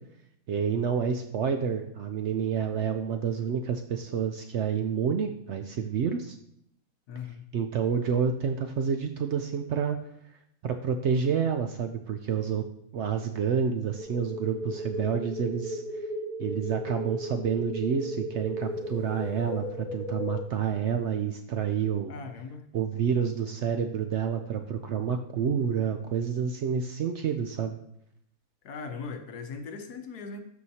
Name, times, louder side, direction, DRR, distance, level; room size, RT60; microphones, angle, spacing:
voice 1, 0.5-6.3 7.5-10.0 10.6-12.6 12.9-15.8 16.4-22.1 22.7-27.8, right 7 dB, 70° right, 6 dB, 0.7 m, -29 dB
voice 2, 7.1-7.5 22.1-22.7 28.6-30.4, left 5 dB, 85° left, 6 dB, 1.4 m, -39 dB
sound 1, 14.0-20.4, equal, 35° right, 1.8 m, -35 dB
13.0 x 4.6 x 2.8 m, 0.73 s
omnidirectional pair, 1.6 m